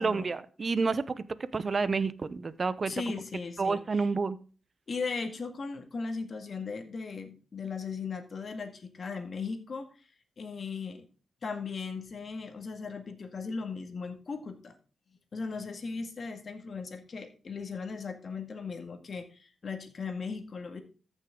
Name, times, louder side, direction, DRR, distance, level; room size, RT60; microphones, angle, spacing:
voice 1, 0.0-2.9 3.6-4.4, right 4 dB, 40° right, 16 dB, 0.8 m, -29 dB
voice 2, 2.9-4.0 4.9-10.1 10.4-11.1 11.4-14.7 15.3-20.8, left 4 dB, 50° left, 6 dB, 2.0 m, -37 dB
14.0 x 6.4 x 3.8 m, 0.37 s
cardioid pair, 75°, 0 cm